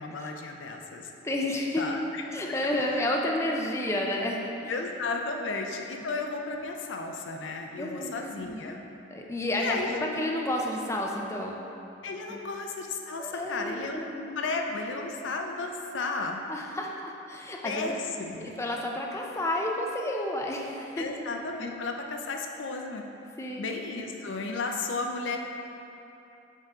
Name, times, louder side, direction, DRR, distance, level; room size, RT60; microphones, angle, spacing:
voice 1, 0.0-1.1 1.8-2.2 2.9-3.0 4.7-8.8 9.6-10.1 12.0-14.0 14.4-16.4 17.6-18.5 21.0-23.0 23.6-25.4, left 3 dB, 80° left, 3 dB, 0.5 m, -33 dB
voice 2, 1.2-1.9 2.3-4.7 5.4-5.5 7.8-8.8 9.1-11.6 12.3-12.4 13.2-14.4 16.5-18.0 18.4-21.1 21.6-21.8 23.4-23.7, left 1 dB, 15° left, 0 dB, 0.4 m, -31 dB
5.5 x 5.0 x 3.5 m, 2.9 s
head